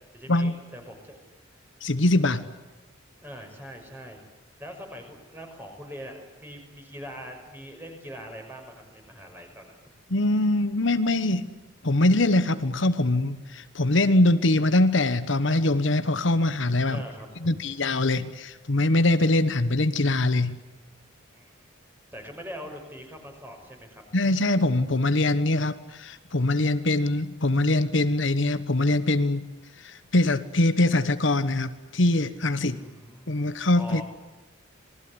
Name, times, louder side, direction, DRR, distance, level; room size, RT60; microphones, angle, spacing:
voice 1, 0.1-1.3 3.2-4.2 4.6-9.8 16.9-17.3 21.3-21.5 22.1-24.0 32.7-33.4 33.8-34.0, equal, 10° right, 3 dB, 6.1 m, -42 dB
voice 2, 1.8-2.4 10.1-11.5 11.8-17.0 17.4-20.6 24.1-29.5 29.8-32.8 33.3-34.0, left 2 dB, 65° left, 12 dB, 1.2 m, -23 dB
27.0 x 20.0 x 9.7 m, 1.1 s
head